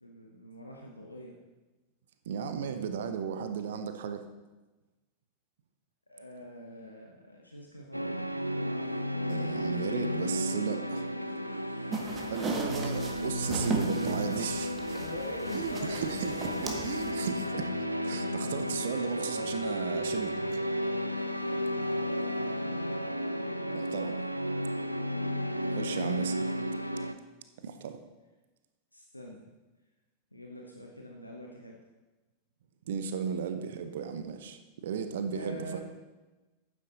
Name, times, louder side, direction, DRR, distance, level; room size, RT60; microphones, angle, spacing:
voice 1, 0.0-1.4 6.1-8.2 8.6-9.0 12.0-12.3 14.8-16.8 22.0-22.9 23.4-23.9 26.2-26.6 28.9-29.4 30.3-31.8 35.3-35.8, equal, 85° left, 0 dB, 1.1 m, -45 dB
voice 2, 2.3-4.2 9.3-11.0 12.3-14.8 15.5-16.3 16.6-20.6 23.7-24.2 25.7-26.4 27.6-28.0 32.9-35.8, right 7 dB, 60° right, 9 dB, 0.9 m, -35 dB
sound 1, 7.9-27.1, equal, 90° right, 0.5 m, -33 dB
sound 2, 11.9-17.1, right 3 dB, 25° right, 1.6 m, -37 dB
11.0 x 9.6 x 4.1 m, 1.2 s
figure-of-eight pair, 90°, 0 cm